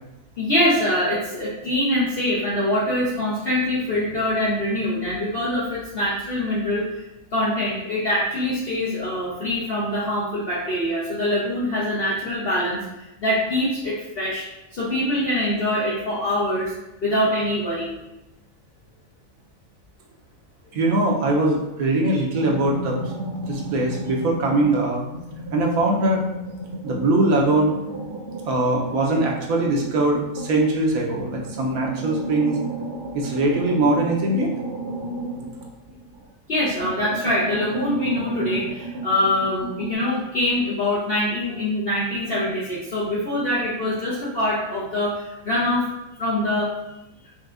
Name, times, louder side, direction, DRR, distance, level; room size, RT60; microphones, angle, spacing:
voice 1, 0.4-7.0 7.3-14.5 14.7-16.7 17.0-17.9 36.5-45.9 46.2-46.7, left 1 dB, 50° left, -7 dB, 0.9 m, -24 dB
voice 2, 20.7-23.0 23.5-25.0 25.5-26.2 26.8-27.7 28.4-32.6 33.1-34.5, right 2 dB, 75° right, -1 dB, 1.2 m, -21 dB
sound 1, 22.3-24.8 25.1-30.7 31.2-36.2 36.6-39.9, right 2 dB, 45° right, 1.0 m, -33 dB
5.6 x 2.6 x 2.5 m, 0.94 s
omnidirectional pair, 1.5 m